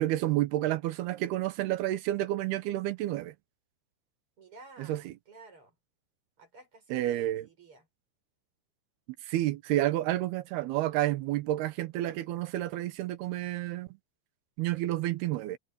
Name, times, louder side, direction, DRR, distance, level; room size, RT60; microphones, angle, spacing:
voice 1, 0.0-3.3 4.8-5.1 6.9-7.5 9.2-13.9 14.6-15.6, right 15 dB, 75° right, 2.7 m, -30 dB
voice 2, 4.4-5.8 6.4-7.9, right 3 dB, 30° right, 7.0 m, -53 dB
omnidirectional pair, 5.2 m